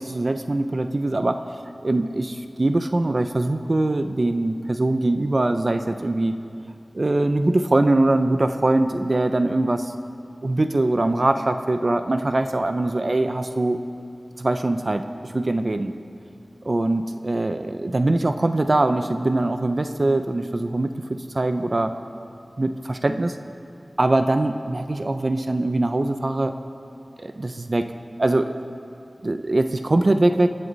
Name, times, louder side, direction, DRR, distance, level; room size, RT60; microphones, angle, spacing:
voice 1, 0.0-1.4 1.8-6.4 6.9-9.9 10.4-13.8 14.4-15.9 16.6-21.9 22.6-23.4 24.0-26.6 27.2-27.9 28.2-28.5 29.2-30.5, right 2 dB, 55° right, 8 dB, 0.6 m, -22 dB
27.5 x 11.0 x 4.1 m, 2.6 s
wide cardioid pair, 50°, 0 cm